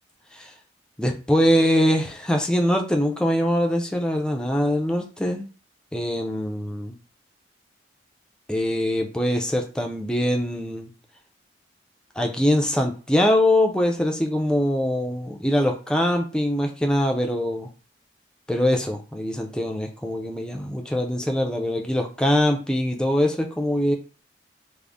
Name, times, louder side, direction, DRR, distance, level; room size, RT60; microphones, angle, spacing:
voice 1, 1.0-5.5 5.9-7.0 8.5-10.9 12.2-17.7 18.5-23.9, left 1 dB, 5° left, 2 dB, 0.4 m, -23 dB
3.7 x 2.0 x 3.5 m, 0.36 s
head